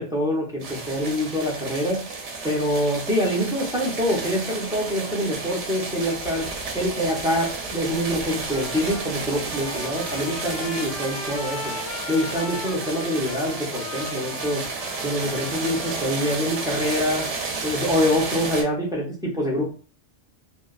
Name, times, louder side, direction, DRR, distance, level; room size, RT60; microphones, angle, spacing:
voice 1, 0.0-2.0 2.4-6.5 6.7-11.7 12.1-14.6 15.0-17.3 17.6-19.6, equal, 5° right, -3 dB, 0.4 m, -25 dB
sound 1, 0.6-18.6, right 4 dB, 90° right, 0.9 m, -32 dB
Trumpet, 8.5-16.4, left 4 dB, 75° left, 0.9 m, -38 dB
2.6 x 2.1 x 2.3 m, 0.37 s
omnidirectional pair, 1.2 m